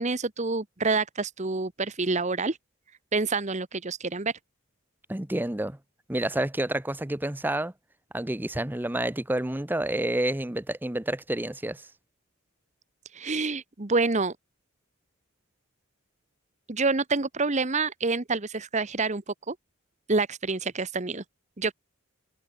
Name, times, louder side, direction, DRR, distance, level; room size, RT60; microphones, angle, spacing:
voice 1, 0.0-2.6 3.1-4.3 13.1-14.3 16.7-19.2 19.5-19.6 20.1-21.2 21.6-21.7, right 3 dB, 30° right, 1.1 m, -27 dB
voice 2, 5.1-5.8 6.1-7.7 8.1-11.9, right 1 dB, 10° right, 0.7 m, -29 dB
head